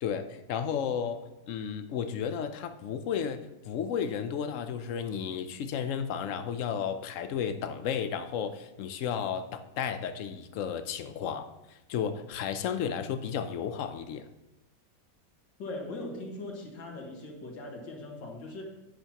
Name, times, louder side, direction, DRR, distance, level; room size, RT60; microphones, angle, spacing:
voice 1, 0.0-11.5 11.9-14.3, left 7 dB, 65° left, 9 dB, 0.8 m, -33 dB
voice 2, 15.6-18.6, left 2 dB, 90° left, 0 dB, 2.2 m, -40 dB
10.5 x 10.5 x 2.9 m, 0.96 s
omnidirectional pair, 1.9 m